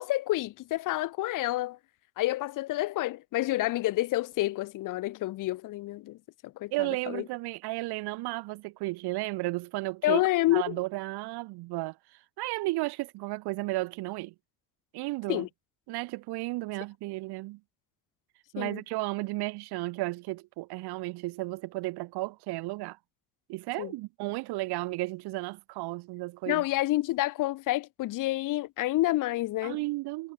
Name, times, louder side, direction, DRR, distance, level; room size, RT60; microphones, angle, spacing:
voice 1, 0.0-1.8 2.2-6.2 6.4-6.7 7.1-7.2 10.0-10.8 15.3-15.5 18.6-18.8 23.8-23.9 26.5-29.8, left 17 dB, 45° left, 0.7 m, -28 dB
voice 2, 6.7-10.2 10.5-12.0 12.4-14.3 14.9-15.5 15.9-17.6 18.5-23.0 23.5-26.6 29.6-30.3, right 21 dB, 60° right, 2.4 m, -33 dB
figure-of-eight pair, 50°, 44 cm